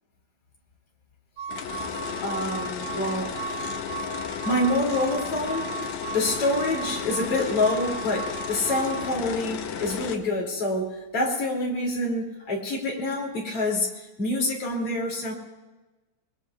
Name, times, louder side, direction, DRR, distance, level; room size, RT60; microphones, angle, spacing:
sound 1, 1.4-9.1, right 5 dB, 85° right, 0.9 m, -36 dB
sound 2, 1.5-10.2, left 8 dB, 75° left, 2.1 m, -34 dB
voice 1, 2.2-3.6 4.4-5.8 6.1-15.3, left 2 dB, 50° left, -2 dB, 3.6 m, -27 dB
27.0 x 20.5 x 2.4 m, 1.2 s
omnidirectional pair, 3.4 m